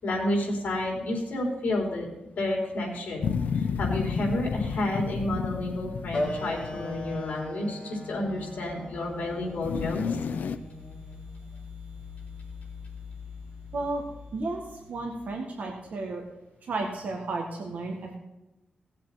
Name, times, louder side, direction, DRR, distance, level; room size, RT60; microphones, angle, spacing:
voice 1, 0.0-3.3 3.5-10.0, left 1 dB, 65° left, -1 dB, 4.1 m, -30 dB
sound 1, 3.2-7.2 9.6-10.6, left 6 dB, 90° left, 0.6 m, -31 dB
sound 2, 6.1-11.2, left 1 dB, 30° left, 3.4 m, -37 dB
sound 3, 8.0-15.5, left 5 dB, 25° right, 2.0 m, -45 dB
voice 2, 14.9-16.2 16.7-18.2, right 3 dB, 65° right, 1 dB, 1.8 m, -32 dB
18.0 x 7.6 x 4.2 m, 0.99 s
wide cardioid pair, 175°, 3 cm